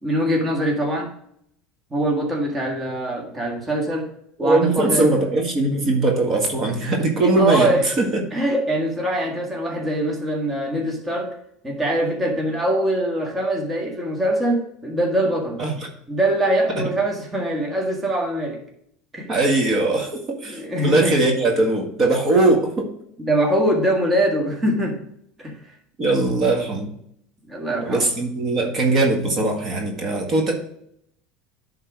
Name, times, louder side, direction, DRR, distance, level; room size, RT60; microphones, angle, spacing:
voice 1, 0.0-1.1 1.9-4.1 4.4-5.1 7.2-7.9 8.3-11.4 11.6-15.6 16.1-18.6 19.1-19.3 20.4-21.2 23.2-25.0 25.4-25.7 27.5-28.1, right 1 dB, 15° right, -1 dB, 1.7 m, -23 dB
voice 2, 4.4-8.2 15.6-15.9 19.3-22.9 26.0-26.9 27.8-30.5, right 2 dB, 35° right, 1 dB, 1.8 m, -20 dB
10.0 x 3.8 x 4.8 m, 0.71 s
supercardioid pair, 120°, 0 cm